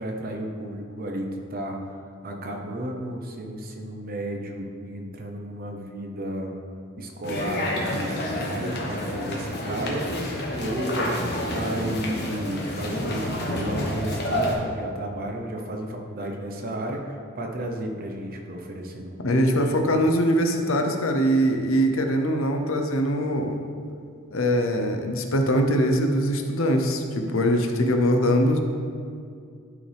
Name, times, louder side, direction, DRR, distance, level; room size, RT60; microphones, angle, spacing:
voice 1, 0.0-6.5 7.0-20.0, right 1 dB, 45° right, 2 dB, 0.9 m, -33 dB
sound 1, 7.2-14.5, left 1 dB, 50° left, 1.3 m, -29 dB
voice 2, 19.2-23.6 24.3-28.6, equal, 70° left, 4 dB, 0.8 m, -22 dB
12.5 x 4.9 x 3.5 m, 2.3 s
head